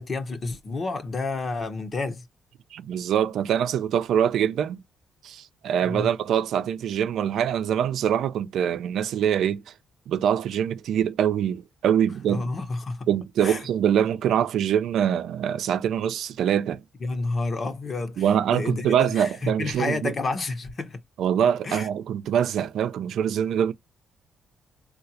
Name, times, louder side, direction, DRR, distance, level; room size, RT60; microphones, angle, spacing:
voice 1, 0.0-2.2 5.8-6.1 12.3-13.1 13.4-13.7 17.0-21.0 21.6-21.9, left 3 dB, 40° left, 1.1 m, -30 dB
voice 2, 2.7-4.8 5.2-9.6 10.1-12.5 13.1-16.8 18.2-20.1 21.2-23.7, right 9 dB, 75° right, 0.5 m, -24 dB
3.7 x 2.4 x 2.8 m
cardioid pair, 90°, 0 cm